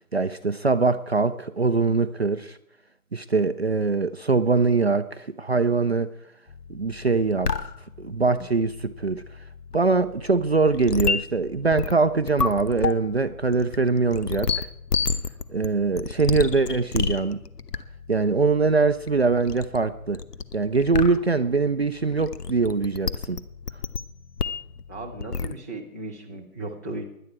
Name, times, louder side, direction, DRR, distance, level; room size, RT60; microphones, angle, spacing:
voice 1, 0.1-2.6 3.1-6.1 6.7-7.5 8.0-9.2 9.7-14.7 15.5-17.4 18.1-20.2 20.5-23.4, right 4 dB, 45° right, 0.6 m, -23 dB
sound 1, 6.5-25.5, left 5 dB, 80° left, 1.1 m, -32 dB
voice 2, 24.9-27.0, right 2 dB, 10° left, 0.8 m, -36 dB
17.0 x 11.0 x 4.7 m
figure-of-eight pair, 160°, 46 cm